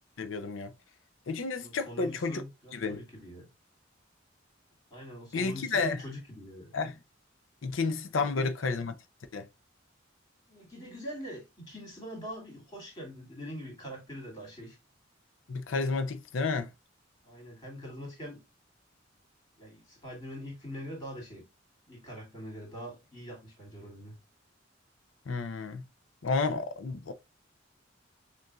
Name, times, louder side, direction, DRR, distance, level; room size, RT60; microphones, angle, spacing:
voice 1, 0.2-0.7 1.3-2.4 2.7-3.0 5.3-6.0 6.7-6.9 7.6-8.9 9.3-9.5 15.5-16.7 25.3-25.8 26.2-27.1, left 4 dB, 85° left, 0.6 m, -31 dB
voice 2, 1.6-3.5 4.9-6.7 8.2-8.5 10.5-14.8 17.2-18.4 19.6-21.4 21.9-24.1, equal, 20° left, 2.5 m, -43 dB
6.4 x 2.6 x 2.3 m
head